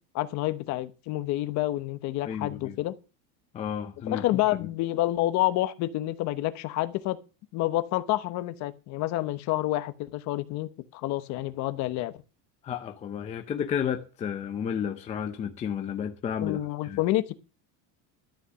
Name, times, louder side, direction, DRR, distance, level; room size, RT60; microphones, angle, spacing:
voice 1, 0.1-2.9 4.1-7.2 7.5-12.1 16.4-17.3, left 16 dB, 35° left, 1.0 m, -28 dB
voice 2, 2.2-2.8 3.5-4.2 12.6-17.0, left 8 dB, 15° left, 0.6 m, -32 dB
12.5 x 6.6 x 7.7 m
cardioid pair, 175°, 47 cm